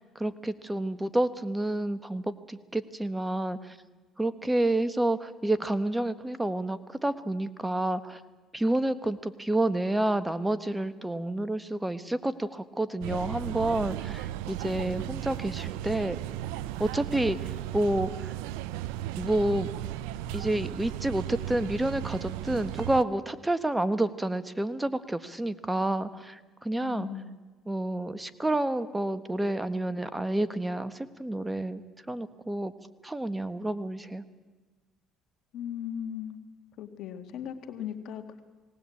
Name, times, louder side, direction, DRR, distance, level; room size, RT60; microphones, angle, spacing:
voice 1, 0.0-3.8 4.2-8.2 8.5-16.2 16.8-18.3 19.2-19.7 20.3-27.1 27.7-31.8 32.1-32.7 33.0-34.2, right 1 dB, 10° right, 13 dB, 1.3 m, -29 dB
sound 1, 13.0-23.0, right 14 dB, 90° right, 0.6 m, -35 dB
voice 2, 26.8-27.4 35.5-36.4 36.8-38.4, left 9 dB, 70° left, 7 dB, 1.9 m, -38 dB
19.0 x 18.5 x 8.5 m, 1.3 s
supercardioid pair, 80°, 0 cm